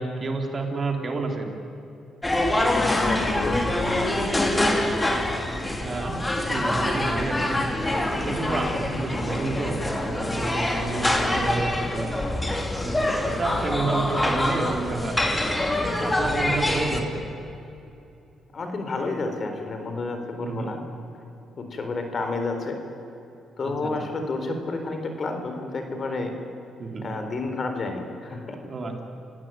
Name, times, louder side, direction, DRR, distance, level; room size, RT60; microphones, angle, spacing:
voice 1, 0.0-1.6 5.8-7.7 7.9-12.1 12.9-15.5 15.9-17.3 20.4-20.7 23.6-23.9 26.8-27.2 28.7-29.0, right 3 dB, 35° right, 3 dB, 3.6 m, -30 dB
sound 1, 2.2-17.0, left 1 dB, 15° left, 2.9 m, -25 dB
voice 2, 2.5-4.5 8.6-8.9 10.9-11.4 13.2-13.7 17.0-17.4 18.5-20.8 21.6-22.8 23.6-26.3 27.0-28.6, left 3 dB, 45° left, 6 dB, 4.0 m, -31 dB
29.0 x 17.0 x 9.2 m, 2.8 s
cardioid pair, 90°, 0 cm